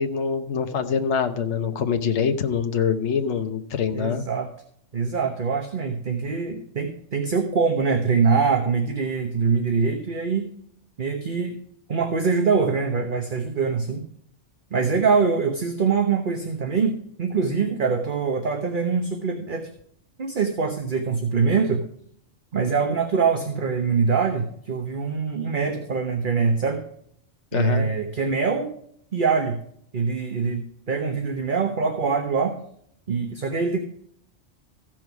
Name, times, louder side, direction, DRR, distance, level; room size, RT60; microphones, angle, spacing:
voice 1, 0.0-4.2 27.5-27.9, left 6 dB, 65° left, 6 dB, 1.2 m, -24 dB
voice 2, 3.9-4.5 4.9-10.4 11.0-11.6 11.9-14.0 14.7-16.9 17.2-19.7 20.2-21.8 22.5-26.8 27.5-28.7 29.1-29.6 29.9-32.6 33.1-33.8, right 5 dB, 45° right, 4 dB, 1.2 m, -23 dB
15.0 x 6.2 x 4.6 m, 0.66 s
omnidirectional pair, 1.3 m